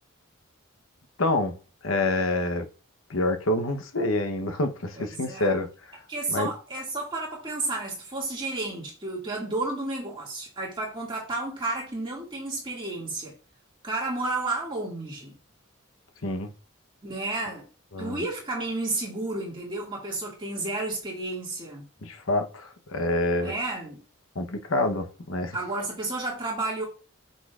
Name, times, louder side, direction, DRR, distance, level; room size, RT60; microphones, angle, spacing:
voice 1, 1.2-1.6 1.8-2.7 3.1-6.0 6.3-6.5 16.2-16.5 17.9-18.2 22.0-23.5 24.3-25.6, left 2 dB, 80° left, 1.0 m, -27 dB
voice 2, 5.0-5.6 6.1-13.3 13.8-15.3 17.0-17.7 18.0-21.9 23.4-24.0 25.5-26.8, right 2 dB, 25° right, 2.2 m, -32 dB
8.3 x 6.8 x 2.4 m
head